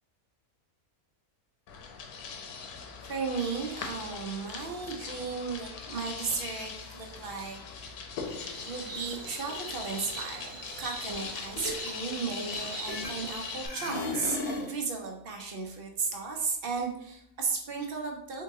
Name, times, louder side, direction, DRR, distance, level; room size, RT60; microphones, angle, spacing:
sound 1, 1.7-13.7, left 5 dB, 80° left, 1.1 m, -41 dB
voice 1, 3.0-8.0 8.6-18.4, right 4 dB, 50° right, 2 dB, 0.7 m, -35 dB
Insect, 8.2-13.6, right 4 dB, 75° right, 1.3 m, -44 dB
sound 2, 11.1-11.3 11.6-13.4 13.6-14.8, left 2 dB, 50° left, 1.0 m, -35 dB
3.8 x 2.8 x 3.6 m, 0.72 s
omnidirectional pair, 1.6 m